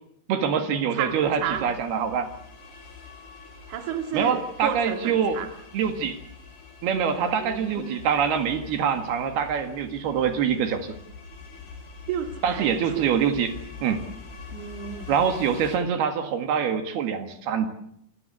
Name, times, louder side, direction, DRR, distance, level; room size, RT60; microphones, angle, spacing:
voice 1, 0.3-2.3 4.1-5.4 5.7-6.2 6.8-11.0 12.4-14.0 15.1-17.7, right 7 dB, 75° right, 7 dB, 3.8 m, -25 dB
voice 2, 0.9-1.7 3.7-5.5 7.4-7.9 12.1-12.7 12.9-13.1 14.5-15.1, right 8 dB, 55° right, 6 dB, 3.3 m, -31 dB
sound 1, 1.1-15.8, left 5 dB, 50° left, 6.6 m, -44 dB
28.5 x 17.0 x 8.3 m, 0.70 s
omnidirectional pair, 4.6 m